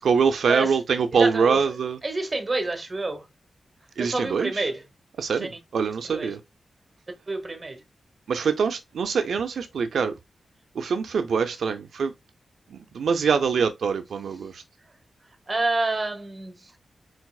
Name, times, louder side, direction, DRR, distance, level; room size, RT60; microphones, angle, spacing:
voice 1, 0.0-2.0 4.0-4.7 5.2-6.4 8.3-10.1 10.8-12.1 12.7-14.6, right 6 dB, 80° right, 0.5 m, -24 dB
voice 2, 1.1-1.6 2.0-3.2 4.0-4.8 5.4-5.5 6.1-6.3 7.3-7.8 15.5-16.5, right 2 dB, 25° right, 1.0 m, -28 dB
4.7 x 3.9 x 2.3 m
wide cardioid pair, 160°, 0 cm